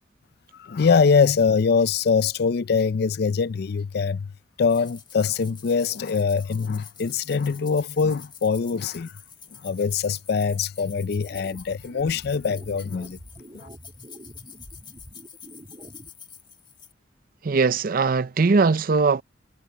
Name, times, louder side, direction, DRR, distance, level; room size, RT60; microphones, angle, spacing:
voice 1, 0.6-4.3 4.6-9.1 9.6-13.2 13.5-13.7, left 5 dB, 60° left, 0.4 m, -23 dB
sound 1, 4.7-16.9, left 7 dB, 25° left, 1.7 m, -47 dB
sound 2, 11.1-16.1, equal, 30° right, 3.0 m, -46 dB
voice 2, 17.4-19.2, right 4 dB, 50° right, 0.5 m, -20 dB
head